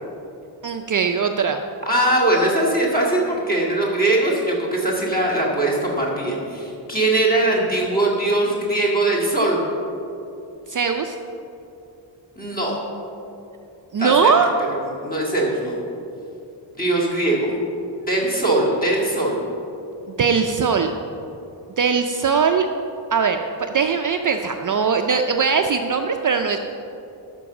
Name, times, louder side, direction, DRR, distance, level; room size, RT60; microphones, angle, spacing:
voice 1, 0.6-1.6 10.7-11.2 13.9-14.5 20.1-20.9 21.8-22.7 23.1-26.6, right 6 dB, 45° right, 5 dB, 0.5 m, -20 dB
voice 2, 1.8-9.6 12.4-12.7 14.0-14.3 14.7-15.8 16.8-17.6 18.0-19.4, right 2 dB, 20° left, -4 dB, 2.1 m, -21 dB
12.0 x 5.3 x 7.0 m, 2.8 s
wide cardioid pair, 175°, 45 cm